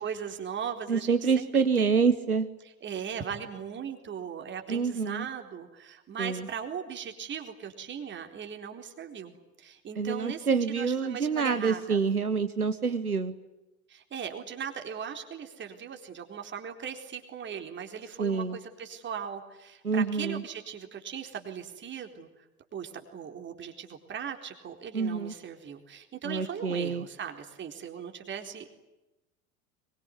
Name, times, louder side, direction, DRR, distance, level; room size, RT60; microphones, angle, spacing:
voice 1, 0.0-1.9 2.8-12.0 13.9-22.4 22.7-28.7, right 7 dB, 25° right, 5 dB, 4.2 m, -39 dB
voice 2, 0.9-2.5 4.7-5.3 6.2-6.5 10.0-13.4 18.2-18.6 19.8-20.4 24.9-25.3 26.2-27.1, right 5 dB, 85° right, 11 dB, 1.3 m, -27 dB
24.5 x 23.0 x 9.9 m, 1.0 s
figure-of-eight pair, 85°, 43 cm